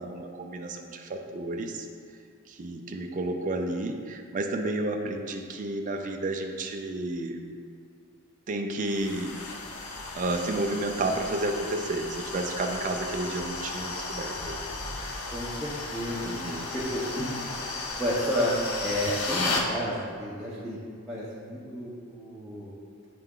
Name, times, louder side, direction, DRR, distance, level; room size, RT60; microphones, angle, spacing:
voice 1, 0.0-1.9 2.5-7.4 8.5-9.3 10.1-14.7 16.2-16.7, right 2 dB, 35° right, 3 dB, 0.4 m, -31 dB
sound 1, 8.8-19.7, left 3 dB, 85° left, 0.7 m, -34 dB
voice 2, 15.3-16.3 16.7-17.3 18.0-18.5 18.8-20.8 21.1-22.8, equal, 5° right, -10 dB, 0.8 m, -31 dB
9.0 x 3.4 x 3.8 m, 2.2 s
head